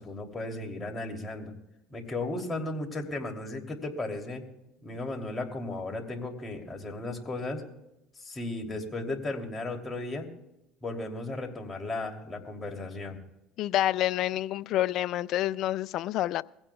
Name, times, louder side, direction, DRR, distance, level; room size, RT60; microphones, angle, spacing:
voice 1, 0.0-1.5 1.9-4.4 4.8-7.6 8.2-10.3 10.8-13.2, left 2 dB, 25° left, 3.0 m, -35 dB
voice 2, 13.6-16.4, left 13 dB, 60° left, 0.4 m, -28 dB
22.5 x 16.0 x 2.3 m
supercardioid pair, 80°, 0 cm